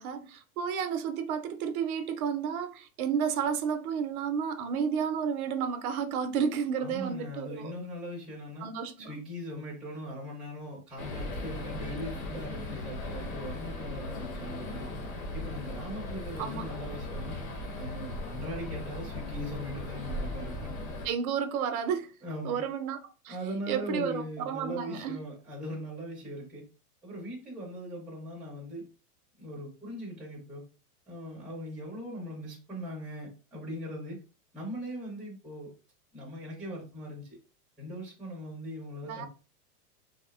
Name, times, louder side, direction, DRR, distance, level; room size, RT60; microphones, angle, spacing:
voice 1, 0.0-7.7 8.6-9.1 16.4-16.7 21.0-22.1 22.4-23.0 23.2-23.4 23.7-25.2 39.0-39.3, right 7 dB, 70° right, 0.6 m, -31 dB
voice 2, 6.8-8.7 9.0-14.9 15.3-17.4 17.7-20.9 22.2-22.6 23.3-26.6 27.0-28.9 29.4-30.6 31.1-34.2 34.5-35.7 36.1-37.3 37.8-39.3, equal, ahead, 0.5 m, -40 dB
sound 1, 11.0-21.1, left 1 dB, 65° left, 0.9 m, -38 dB
2.7 x 2.1 x 2.3 m
supercardioid pair, 140°, 46 cm